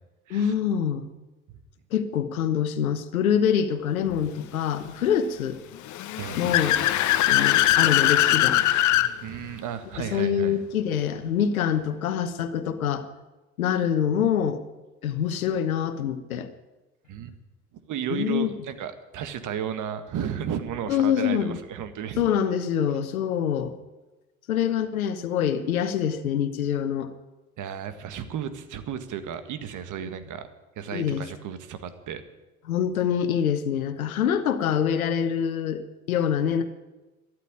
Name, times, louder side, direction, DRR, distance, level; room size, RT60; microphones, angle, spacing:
voice 1, 0.3-1.1 1.9-5.6 6.3-6.8 7.3-8.6 10.0-13.0 13.6-14.6 15.0-16.5 18.1-18.5 20.9-21.6 22.2-23.7 24.5-27.1 30.9-31.3 32.7-35.8 36.1-36.6, left 8 dB, 75° left, 10 dB, 1.3 m, -25 dB
Car / Accelerating revving vroom, 5.9-9.1, left 13 dB, 45° left, 0.9 m, -21 dB
voice 2, 9.2-10.6 17.1-17.3 17.7-22.2 27.6-30.4 30.8-32.2, right 8 dB, 45° right, 10 dB, 1.7 m, -33 dB
13.5 x 11.5 x 8.9 m, 1.1 s
figure-of-eight pair, 65°, 42 cm